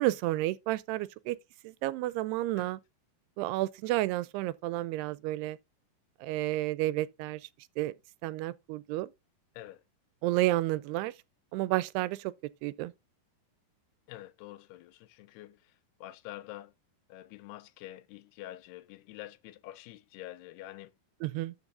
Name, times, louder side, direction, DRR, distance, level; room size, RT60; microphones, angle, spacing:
voice 1, 0.0-1.4 1.6-2.8 3.4-5.6 6.2-7.4 7.8-7.9 8.2-9.1 10.2-11.1 11.5-12.3 12.6-12.9 21.2-21.5, right 16 dB, 85° right, 2.6 m, -31 dB
voice 2, 14.1-16.7 17.1-20.9, left 15 dB, 80° left, 2.6 m, -47 dB
13.0 x 5.6 x 2.5 m
omnidirectional pair, 4.8 m